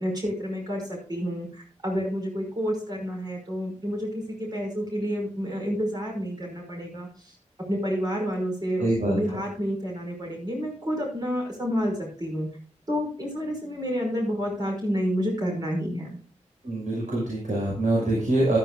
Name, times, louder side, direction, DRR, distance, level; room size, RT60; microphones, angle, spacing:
voice 1, 0.0-7.3 7.7-12.5 12.9-16.2, equal, 35° right, 0 dB, 5.5 m, -29 dB
voice 2, 8.8-9.2 16.6-18.6, right 1 dB, 80° right, -3 dB, 5.8 m, -24 dB
15.0 x 13.0 x 2.4 m, 0.41 s
wide cardioid pair, 115°, 13 cm